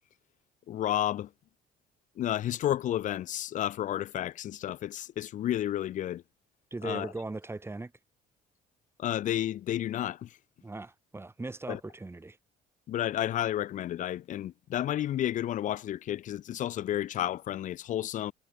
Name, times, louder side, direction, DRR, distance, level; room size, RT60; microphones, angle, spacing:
voice 1, 0.7-1.3 2.2-6.2 6.8-7.1 9.0-10.4 11.7-11.8 12.9-18.3, left 12 dB, 50° left, 0.4 m, -31 dB
voice 2, 6.7-7.9 10.6-12.4, right 2 dB, 15° right, 2.9 m, -39 dB
cardioid pair, 110°, 17 cm